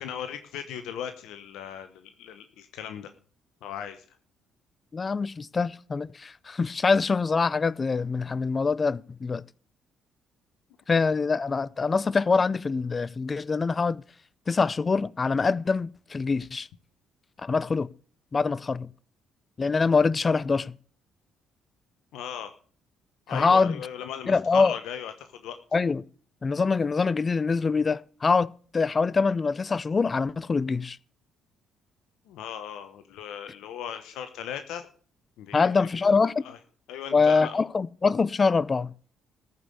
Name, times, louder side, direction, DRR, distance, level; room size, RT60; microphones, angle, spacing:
voice 1, 0.0-3.1 3.6-4.0 22.1-22.5 23.3-25.6 32.3-34.9 35.4-35.9 36.4-36.6 36.9-37.6, left 9 dB, 75° left, 0.9 m, -37 dB
voice 2, 4.9-9.4 10.9-14.0 14.5-16.7 17.4-17.9 18.3-18.9 19.6-20.7 23.3-23.8 24.3-24.7 25.7-26.0 26.4-31.0 35.5-36.4 37.1-38.9, left 4 dB, 35° left, 0.6 m, -24 dB
14.0 x 5.5 x 8.3 m
hypercardioid pair, 55°, 0 cm